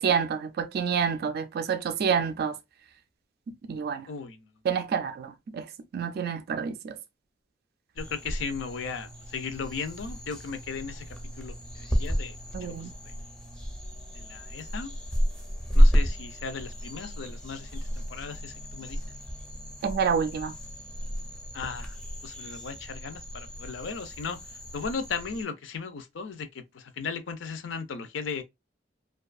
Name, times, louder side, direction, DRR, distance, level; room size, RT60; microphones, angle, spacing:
voice 1, 0.0-2.6 3.7-4.1 4.6-7.0 12.5-12.9 19.8-20.5, right 6 dB, 55° right, 0.3 m, -28 dB
voice 2, 4.1-4.5 8.0-11.1 11.4-12.4 12.6-12.9 14.1-15.0 15.7-19.0 21.5-22.0 22.2-24.4 24.7-28.4, left 5 dB, 75° left, 0.5 m, -36 dB
sound 1, 8.0-25.4, equal, 5° left, 0.5 m, -30 dB
2.6 x 2.3 x 2.3 m
head